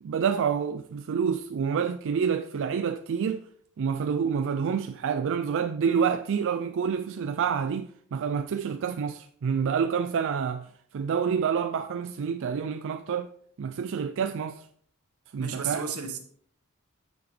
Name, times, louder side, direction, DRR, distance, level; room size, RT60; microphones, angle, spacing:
voice 1, 0.0-3.4 3.8-10.7 10.9-13.3 13.6-14.7 15.3-15.8, right 6 dB, 60° right, 0.4 m, -28 dB
voice 2, 15.4-16.2, right 6 dB, 80° right, 1.3 m, -33 dB
9.4 x 7.0 x 3.3 m
head